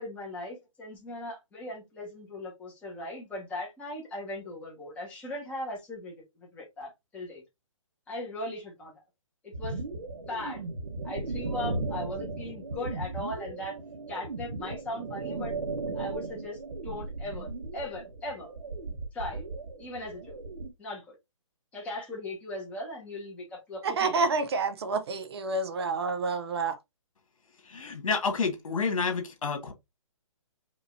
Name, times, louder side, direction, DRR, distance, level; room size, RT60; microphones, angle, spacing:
voice 1, 0.0-7.4 8.1-8.9 9.4-9.8 10.1-10.6 11.0-13.8 14.1-15.5 15.9-18.5 19.1-19.4 19.8-20.4 20.8-21.1 21.7-24.2, left 1 dB, 5° left, 1.4 m, -39 dB
sound 1, 9.5-20.7, right 3 dB, 65° right, 1.2 m, -36 dB
voice 2, 23.8-26.7, right 3 dB, 50° right, 0.7 m, -28 dB
voice 3, 27.7-29.7, left 5 dB, 75° left, 1.8 m, -29 dB
5.2 x 2.9 x 2.7 m
hypercardioid pair, 160°, 17 cm